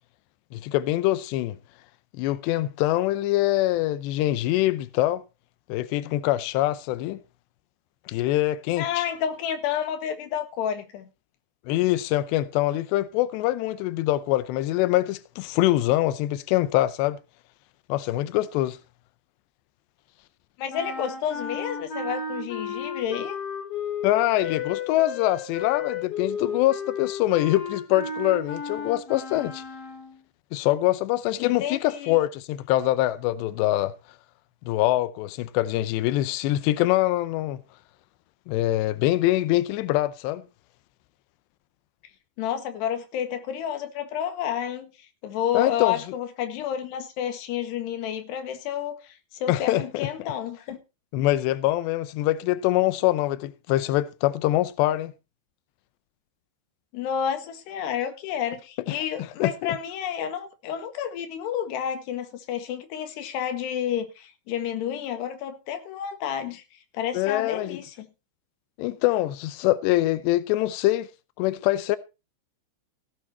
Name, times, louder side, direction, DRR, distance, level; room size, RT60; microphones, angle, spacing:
voice 1, 0.5-1.6 2.1-5.2 5.7-7.2 8.1-9.0 11.7-17.2 17.9-18.8 24.0-29.6 30.5-33.9 34.7-37.6 38.5-40.4 45.5-46.0 49.5-50.1 51.1-55.1 58.9-59.0 59.4-59.8 67.1-67.8 68.8-71.1 71.4-72.0, left 15 dB, 90° left, 2.4 m, -24 dB
voice 2, 8.8-11.1 20.6-23.4 31.4-32.2 42.4-44.9 45.2-50.8 56.9-66.6 66.9-68.1, left 9 dB, 65° left, 3.4 m, -30 dB
sound 1, 20.7-30.2, left 5 dB, 35° left, 3.6 m, -33 dB
16.5 x 9.0 x 4.1 m
omnidirectional pair, 5.9 m